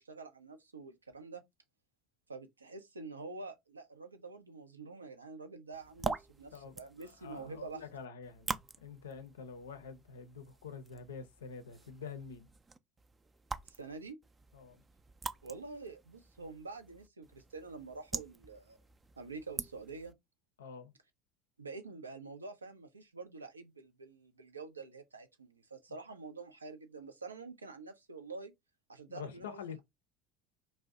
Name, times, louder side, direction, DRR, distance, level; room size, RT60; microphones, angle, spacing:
voice 1, 0.0-1.4 2.3-7.8 13.7-14.2 15.4-18.8 19.2-20.1 21.6-28.5 28.9-29.6, right 3 dB, 90° right, 0.4 m, -47 dB
sound 1, 5.7-20.1, right 4 dB, 20° right, 0.3 m, -45 dB
voice 2, 6.5-12.5 14.5-14.8 20.6-20.9 29.1-29.8, left 6 dB, 75° left, 0.5 m, -47 dB
2.6 x 2.1 x 3.5 m
figure-of-eight pair, 70°, 0 cm